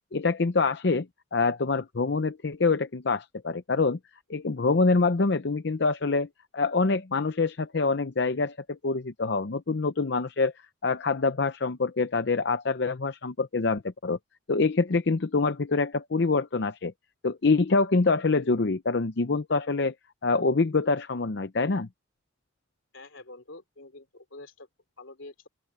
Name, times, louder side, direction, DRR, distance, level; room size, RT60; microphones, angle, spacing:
voice 1, 0.1-4.0 4.3-6.3 6.5-10.5 10.8-14.2 14.5-16.9 17.2-19.9 20.2-21.9, left 3 dB, 60° left, 0.7 m, -25 dB
voice 2, 22.9-24.7 25.0-25.5, left 2 dB, 80° left, 2.8 m, -46 dB
open air
head